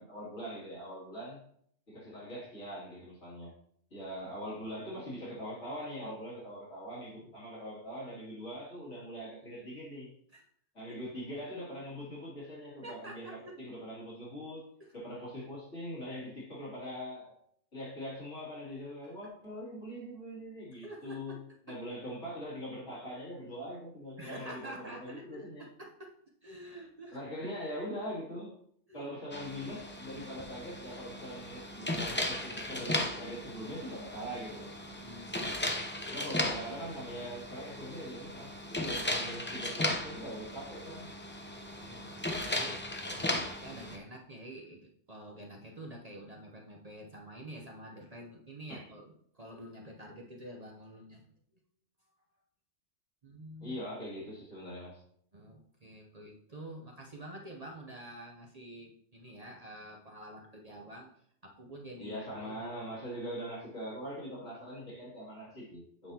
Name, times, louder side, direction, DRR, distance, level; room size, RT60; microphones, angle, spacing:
voice 1, 0.0-1.5 1.9-3.5 3.9-10.1 10.7-17.3 17.7-21.4 21.7-25.6 27.1-28.5 28.9-34.7 35.4-35.6 36.1-41.1 48.7-48.8 53.6-55.0 62.0-66.1, equal, 70° left, -6 dB, 3.0 m, -42 dB
voice 2, 12.8-13.5 14.8-14.9 19.0-19.1 20.8-21.4 21.7-21.8 24.2-26.1 26.4-27.2 28.9-29.1 34.9-35.6 41.8-51.2 53.2-53.8 55.3-62.9, right 1 dB, 35° right, 0 dB, 0.8 m, -48 dB
sound 1, 29.3-44.0, left 1 dB, 15° left, 0.5 m, -36 dB
7.9 x 5.5 x 2.8 m, 0.66 s
omnidirectional pair, 1.3 m